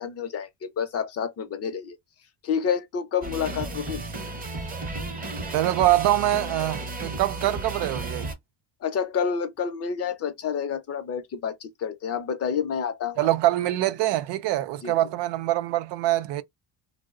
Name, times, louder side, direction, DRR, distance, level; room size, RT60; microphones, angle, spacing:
voice 1, 0.0-2.0 2.4-4.0 8.8-13.3 14.8-14.9, left 7 dB, 40° left, 0.5 m, -29 dB
sound 1, 3.2-8.3, right 2 dB, 20° right, 0.6 m, -33 dB
voice 2, 5.5-8.3 13.2-16.4, right 15 dB, 90° right, 0.5 m, -24 dB
2.7 x 2.0 x 2.3 m
cardioid pair, 150°, 40 cm